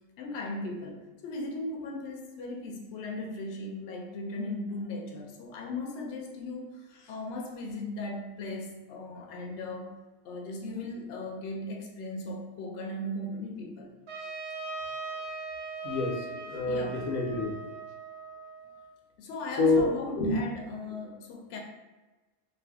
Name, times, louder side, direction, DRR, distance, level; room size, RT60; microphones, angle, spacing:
voice 1, 0.2-10.0 10.2-13.9 16.7-17.0 17.3-17.5 19.2-21.6, left 2 dB, 65° left, 1 dB, 0.8 m, -37 dB
Trumpet, 14.1-18.9, right 3 dB, 60° right, 0.7 m, -40 dB
voice 2, 15.8-17.6 19.6-19.9 20.2-20.4, left 3 dB, 90° left, 0 dB, 1.1 m, -27 dB
2.5 x 2.3 x 3.4 m, 1.2 s
omnidirectional pair, 1.4 m